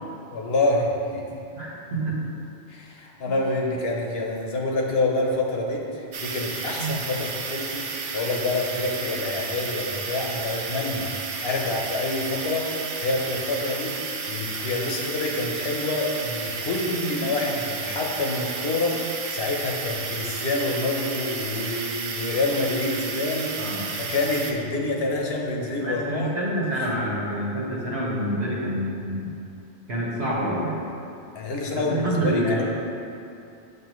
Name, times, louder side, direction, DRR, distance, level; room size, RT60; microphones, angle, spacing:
voice 1, 0.3-1.4 2.7-11.1 11.4-12.7 13.0-23.6 24.0-26.3 26.7-26.9 31.3-32.6, left 2 dB, 70° left, 0 dB, 1.1 m, -27 dB
voice 2, 1.5-2.2 3.2-3.3 6.8-6.9 23.6-23.9 25.8-29.3 29.9-30.8 31.7-32.6, right 1 dB, 80° right, -5 dB, 1.7 m, -27 dB
sound 1, 6.1-24.5, right 4 dB, 55° right, 0.7 m, -32 dB
7.8 x 5.6 x 3.1 m, 2.6 s
omnidirectional pair, 1.1 m